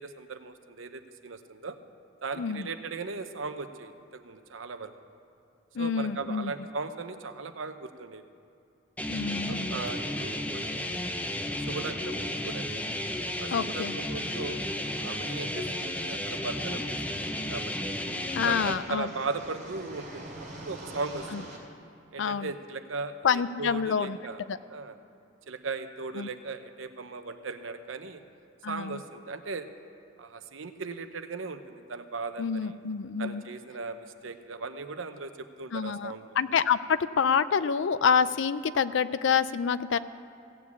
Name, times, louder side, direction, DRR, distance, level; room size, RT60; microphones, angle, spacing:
voice 1, 0.0-1.8 2.2-4.9 5.8-8.3 9.5-11.1 11.5-12.7 13.4-14.6 15.0-18.0 18.4-21.6 22.1-24.4 24.7-25.0 25.5-28.2 28.7-29.7 30.2-32.8 33.2-35.3 35.6-36.4, right 4 dB, 85° right, 9 dB, 0.8 m, -38 dB
voice 2, 2.4-2.7 5.8-6.5 9.1-9.8 13.5-14.0 18.4-19.1 21.3-21.4 22.2-22.5 23.2-24.2 24.5-24.6 26.2-26.3 28.6-29.0 32.4-33.4 35.7-40.0, left 6 dB, 70° left, 15 dB, 0.4 m, -27 dB
sound 1, 9.0-18.7, left 1 dB, 10° left, 0.7 m, -33 dB
sound 2, 14.3-21.6, right 1 dB, 45° right, 3.1 m, -47 dB
16.0 x 7.3 x 8.4 m, 2.6 s
head